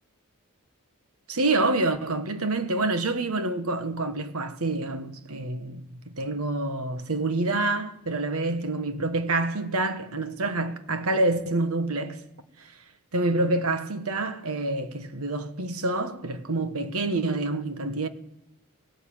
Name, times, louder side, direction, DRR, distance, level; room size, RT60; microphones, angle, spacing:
voice 1, 1.3-12.2 12.6-12.7 13.1-18.1, right 2 dB, 70° right, 1.4 m, -27 dB
18.0 x 17.0 x 8.7 m
head